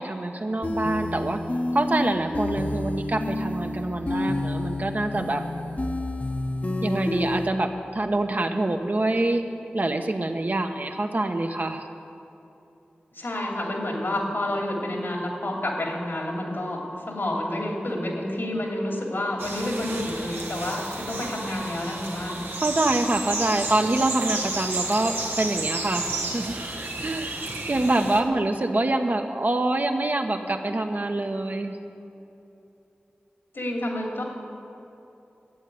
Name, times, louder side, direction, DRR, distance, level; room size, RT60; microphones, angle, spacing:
voice 1, 0.0-1.4 1.7-5.4 6.8-9.5 9.7-11.9 22.6-27.4 27.7-31.8, right 2 dB, 50° right, 4 dB, 1.1 m, -25 dB
sound 1, 0.6-7.5, left 1 dB, 45° left, 1.0 m, -29 dB
voice 2, 13.1-22.4 33.5-34.2, left 1 dB, 75° left, -1 dB, 2.8 m, -29 dB
sound 2, 19.4-28.2, right 2 dB, 85° right, 1.5 m, -32 dB
12.0 x 8.2 x 9.7 m, 2.8 s
cardioid pair, 45°, 4 cm